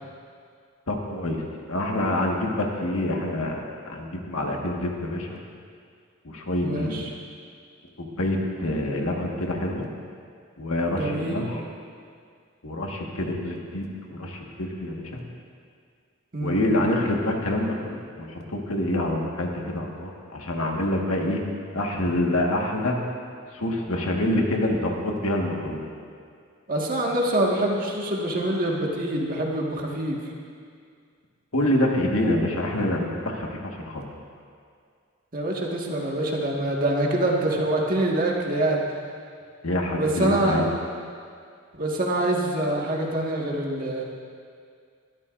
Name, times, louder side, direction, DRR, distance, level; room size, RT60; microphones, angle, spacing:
voice 1, 0.9-1.4 1.7-5.3 6.2-7.0 8.0-9.8 10.6-11.6 12.6-15.2 16.4-21.4 21.7-22.9 23.5-25.9 31.5-34.0 39.6-40.7, left 1 dB, 80° left, 0 dB, 1.7 m, -26 dB
voice 2, 6.6-7.1 11.0-11.4 16.3-16.6 26.7-30.2 35.3-38.8 40.0-40.7 41.8-44.0, right 1 dB, 40° right, -2 dB, 1.8 m, -25 dB
22.5 x 13.0 x 2.6 m, 2.2 s
head